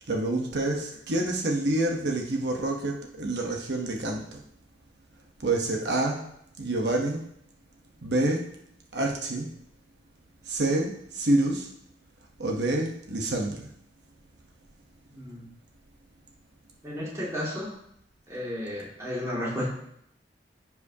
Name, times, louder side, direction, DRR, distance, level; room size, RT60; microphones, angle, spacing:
voice 1, 0.1-4.4 5.4-6.2 6.6-7.2 8.0-8.5 8.9-9.5 10.5-11.7 12.4-13.7, right 2 dB, 75° right, 1 dB, 1.0 m, -27 dB
voice 2, 15.1-15.5 16.8-17.7 18.3-19.7, left 1 dB, 15° right, -6 dB, 2.3 m, -33 dB
14.5 x 4.8 x 2.8 m, 0.74 s
head